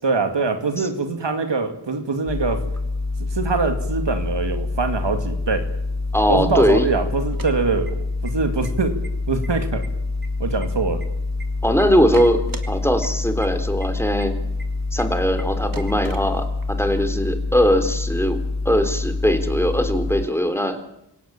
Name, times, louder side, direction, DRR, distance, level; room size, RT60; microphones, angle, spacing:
voice 1, 0.0-2.7 3.3-5.7 6.3-9.0 9.3-9.8 10.4-11.0, right 4 dB, 75° right, 7 dB, 2.5 m, -23 dB
sound 1, 2.3-20.3, left 3 dB, 40° left, 1.4 m, -26 dB
voice 2, 6.1-6.9 11.6-14.4 14.9-18.4 18.7-20.8, equal, 5° left, 7 dB, 3.5 m, -20 dB
sound 2, 7.2-8.3 8.6-8.7 9.0-9.5 9.8-11.4 11.8-12.7 13.0-13.1 13.4-13.5 13.8-13.9 14.2-14.3 14.6-14.7 15.0-15.1 15.4-15.5 15.7-16.8, right 3 dB, 50° right, 3.2 m, -37 dB
27.0 x 17.0 x 8.9 m, 0.82 s
cardioid pair, 45°, 43 cm